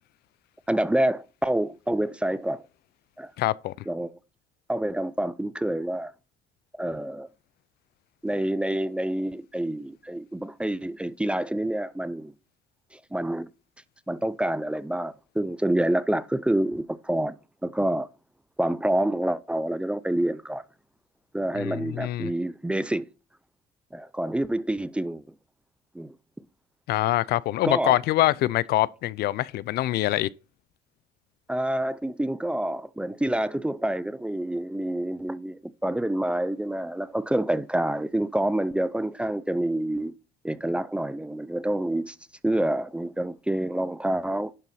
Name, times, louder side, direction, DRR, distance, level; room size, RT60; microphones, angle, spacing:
voice 1, 0.7-2.6 3.2-3.3 3.9-4.1 4.7-6.1 6.8-7.3 8.2-12.3 12.9-13.5 14.1-17.4 17.6-18.1 18.6-20.6 21.3-23.1 23.9-25.2 25.9-26.1 27.6-28.0 31.5-40.1 40.4-42.2 42.4-44.5, right 1 dB, 5° right, 0.5 m, -27 dB
voice 2, 3.4-3.7 21.6-22.3 26.9-30.3, left 16 dB, 70° left, 0.4 m, -24 dB
11.0 x 4.0 x 5.6 m
cardioid pair, 110°, 17 cm